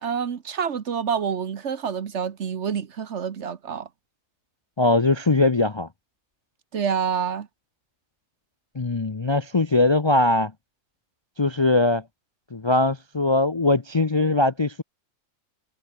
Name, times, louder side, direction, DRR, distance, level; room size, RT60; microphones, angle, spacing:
voice 1, 0.0-3.9 6.7-7.5, right 7 dB, 55° right, 1.3 m, -27 dB
voice 2, 4.8-5.9 8.8-10.5 11.4-12.0 12.5-14.8, left 2 dB, 30° left, 0.6 m, -21 dB
omnidirectional pair, 1.5 m